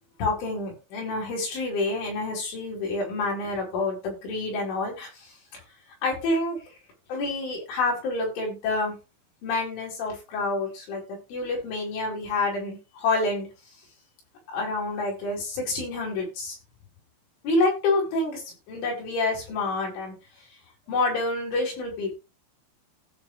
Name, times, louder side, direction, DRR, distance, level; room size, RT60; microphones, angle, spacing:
voice 1, 0.2-5.1 6.0-6.6 7.1-9.0 9.4-11.0 11.3-13.5 14.5-16.6 17.4-18.4 18.7-20.1 20.9-22.2, left 2 dB, 80° left, -2 dB, 7.9 m, -28 dB
16.0 x 5.9 x 3.4 m, 0.29 s
omnidirectional pair, 5.5 m